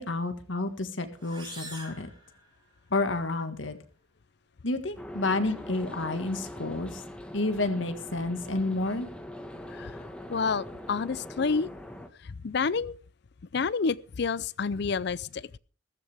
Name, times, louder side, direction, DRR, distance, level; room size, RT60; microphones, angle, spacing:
voice 1, 0.0-2.1 2.9-3.8 4.6-7.0 7.3-9.1, left 2 dB, 75° left, 1.7 m, -30 dB
sound 1, 1.2-3.0, right 2 dB, 25° right, 6.9 m, -45 dB
sound 2, 5.0-12.1, left 1 dB, 5° left, 1.4 m, -42 dB
voice 2, 10.3-11.7 12.2-12.9 13.5-15.5, left 5 dB, 60° left, 0.5 m, -29 dB
14.5 x 14.0 x 3.5 m
head